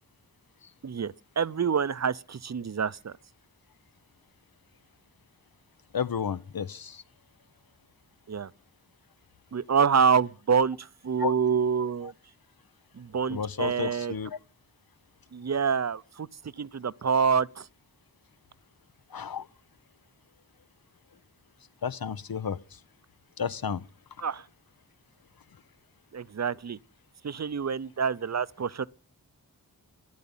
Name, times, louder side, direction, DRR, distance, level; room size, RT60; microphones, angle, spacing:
voice 1, 0.8-3.2 8.3-8.5 9.5-12.1 12.9-14.2 15.3-16.3 16.6-17.7 24.2-24.5 26.1-26.8 27.2-28.9, right 6 dB, 50° right, 0.6 m, -27 dB
voice 2, 5.9-7.0 11.2-11.3 13.3-14.4 19.1-19.5 21.8-22.8 23.4-23.8, left 7 dB, 75° left, 0.8 m, -32 dB
14.0 x 10.5 x 7.2 m
wide cardioid pair, 50°, 36 cm